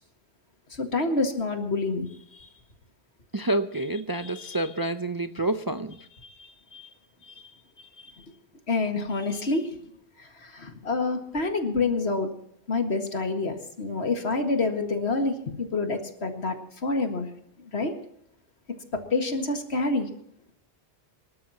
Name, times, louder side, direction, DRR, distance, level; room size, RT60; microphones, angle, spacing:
voice 1, 0.7-2.5 4.2-4.6 6.2-6.9 7.3-7.4 8.0-8.2 8.7-9.7 10.2-12.3 12.7-16.6 16.8-17.3 17.7-17.9 18.9-20.1, left 3 dB, 75° left, 5 dB, 2.1 m, -28 dB
voice 2, 3.3-6.0, right 2 dB, 25° right, 9 dB, 0.5 m, -28 dB
25.0 x 12.5 x 2.9 m, 0.73 s
omnidirectional pair, 1.1 m